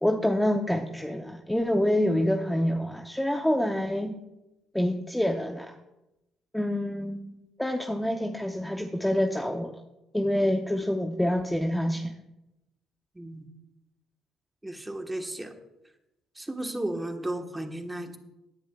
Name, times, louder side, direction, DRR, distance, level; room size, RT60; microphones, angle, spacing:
voice 1, 0.0-4.2 4.7-5.8 6.5-9.8 10.1-12.1, left 1 dB, 5° left, 4 dB, 0.7 m, -27 dB
voice 2, 13.1-13.5 14.6-15.5 16.3-18.2, right 1 dB, 10° right, 5 dB, 1.3 m, -34 dB
17.5 x 10.0 x 2.4 m, 0.95 s
cardioid pair, 85°, 0 cm